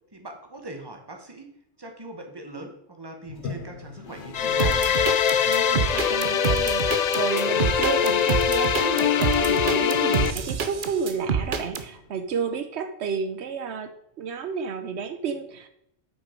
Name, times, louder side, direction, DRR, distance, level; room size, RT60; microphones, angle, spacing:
voice 1, 0.1-1.5 1.8-4.8, right 2 dB, 20° right, 3 dB, 1.4 m, -41 dB
Toilet flush, 3.2-12.3, left 5 dB, 75° left, 1.2 m, -42 dB
sound 1, 4.3-10.3, left 8 dB, 55° left, 0.5 m, -23 dB
sound 2, 4.6-11.8, right 6 dB, 55° right, 0.9 m, -27 dB
voice 2, 5.5-15.7, right 6 dB, 80° right, 9 dB, 1.0 m, -31 dB
8.6 x 6.1 x 5.1 m, 0.76 s
omnidirectional pair, 1.2 m